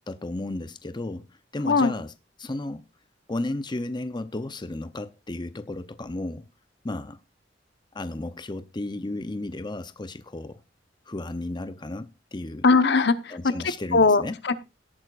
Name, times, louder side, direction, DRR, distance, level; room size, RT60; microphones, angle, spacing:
voice 1, 0.1-1.3 1.5-2.1 2.4-2.8 3.3-6.5 6.8-7.2 7.9-10.6 11.1-12.6 13.3-14.3, left 2 dB, 25° left, 0.7 m, -33 dB
voice 2, 1.7-2.0 12.6-13.5 13.9-14.6, left 4 dB, 65° left, 1.0 m, -20 dB
17.5 x 8.8 x 2.5 m
head